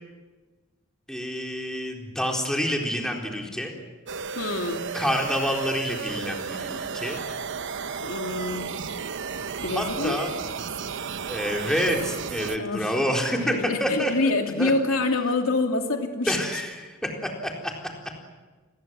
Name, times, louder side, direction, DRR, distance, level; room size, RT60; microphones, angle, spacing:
voice 1, 1.1-3.7 4.9-7.2 9.7-10.3 11.3-14.1 14.6-14.7 16.3-17.7, equal, 5° left, 0 dB, 4.1 m, -28 dB
sound 1, 4.1-12.6, right 6 dB, 60° right, 0.9 m, -33 dB
voice 2, 4.4-4.9 8.0-8.7 9.6-10.2 12.5-12.9 13.4-16.4, left 2 dB, 85° left, 3 dB, 2.8 m, -26 dB
28.5 x 21.0 x 7.7 m, 1.3 s
head